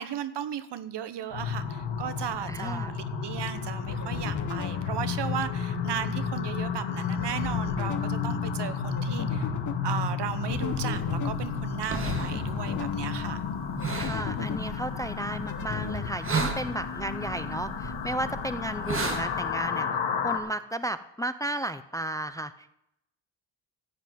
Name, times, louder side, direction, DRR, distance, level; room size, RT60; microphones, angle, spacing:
voice 1, 0.0-9.5 9.8-13.4, right 9 dB, 70° right, 13 dB, 1.0 m, -35 dB
sound 1, 1.3-20.4, left 6 dB, 80° left, 2.0 m, -32 dB
voice 2, 2.5-3.0 14.0-19.9 20.2-22.8, right 1 dB, 10° left, 12 dB, 0.4 m, -34 dB
sound 2, 3.5-16.1, left 7 dB, 45° left, 1.1 m, -37 dB
sound 3, 10.5-19.5, right 4 dB, 30° right, 1.7 m, -36 dB
14.5 x 5.4 x 9.2 m, 0.80 s
wide cardioid pair, 145°, 44 cm